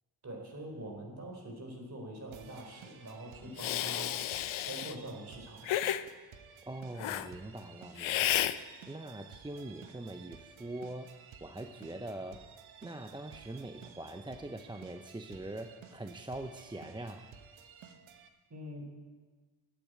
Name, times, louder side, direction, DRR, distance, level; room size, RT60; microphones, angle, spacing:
voice 1, 0.2-4.2 4.6-5.7 18.5-18.9, right 1 dB, 35° right, 2 dB, 3.9 m, -44 dB
sound 1, 2.3-18.3, right 7 dB, 80° right, 1.2 m, -54 dB
Hiss, 3.6-4.9 5.6-6.0 7.0-7.3 8.0-8.6, left 12 dB, 85° left, 0.7 m, -32 dB
voice 2, 6.6-12.5 12.8-17.3, right 1 dB, 10° right, 6 dB, 0.6 m, -43 dB
12.0 x 8.5 x 9.2 m, 1.4 s
cardioid pair, 95°, 47 cm